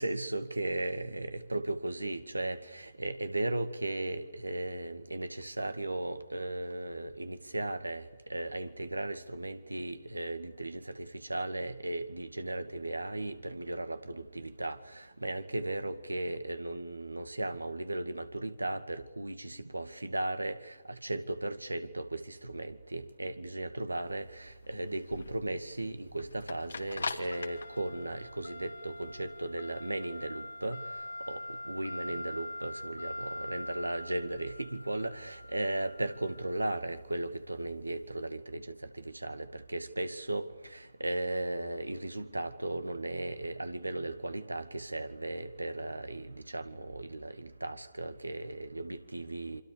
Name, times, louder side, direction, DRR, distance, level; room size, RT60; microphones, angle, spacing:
voice 1, 0.0-30.8 31.3-49.6, right 2 dB, 85° right, 2.2 m, -36 dB
sound 1, 24.1-38.2, left 2 dB, 70° left, 2.6 m, -43 dB
27.0 x 26.0 x 7.0 m
figure-of-eight pair, 135°, 0 cm